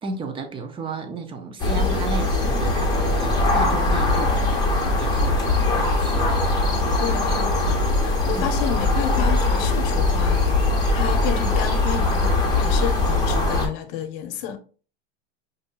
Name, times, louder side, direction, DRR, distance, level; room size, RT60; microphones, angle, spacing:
voice 1, 0.0-4.4 5.0-5.5 5.7-6.3 8.3-8.5, right 3 dB, 15° right, 0.5 m, -33 dB
sound 1, 1.6-13.7, left 2 dB, 15° left, 1.0 m, -21 dB
voice 2, 7.0-10.4 10.9-14.6, left 9 dB, 55° left, 0.8 m, -30 dB
5.1 x 2.7 x 2.4 m
supercardioid pair, 135°, 32 cm